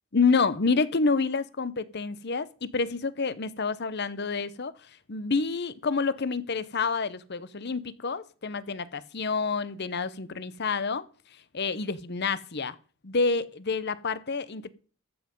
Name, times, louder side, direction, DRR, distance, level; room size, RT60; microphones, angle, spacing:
voice 1, 0.1-11.0 11.5-12.8 13.0-14.7, left 4 dB, 50° left, 0.8 m, -28 dB
14.0 x 7.7 x 5.3 m
head